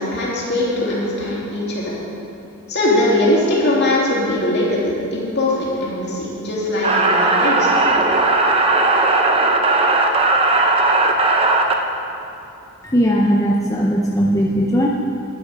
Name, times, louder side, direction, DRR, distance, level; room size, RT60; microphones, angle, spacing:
voice 1, 0.0-1.9 2.7-8.0, left 1 dB, 50° left, -5 dB, 2.7 m, -20 dB
sound 1, 6.8-11.7, right 2 dB, 25° right, 0.7 m, -16 dB
voice 2, 12.8-14.9, equal, 15° left, -2 dB, 0.6 m, -18 dB
10.5 x 9.8 x 5.0 m, 2.7 s
head